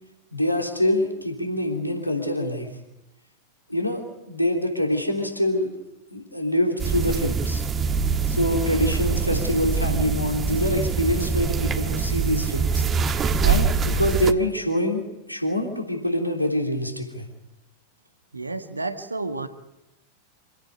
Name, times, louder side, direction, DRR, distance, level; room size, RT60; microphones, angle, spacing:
voice 1, 0.3-2.7 3.7-4.0 4.3-5.7 6.1-7.6 8.3-12.8 13.1-17.3, left 1 dB, 90° left, 1 dB, 3.3 m, -25 dB
sound 1, 6.8-14.3, right 5 dB, 25° right, 1.3 m, -24 dB
voice 2, 18.3-19.5, right 3 dB, 80° right, 8 dB, 1.6 m, -30 dB
26.5 x 17.0 x 8.2 m, 0.96 s
figure-of-eight pair, 90°, 0 cm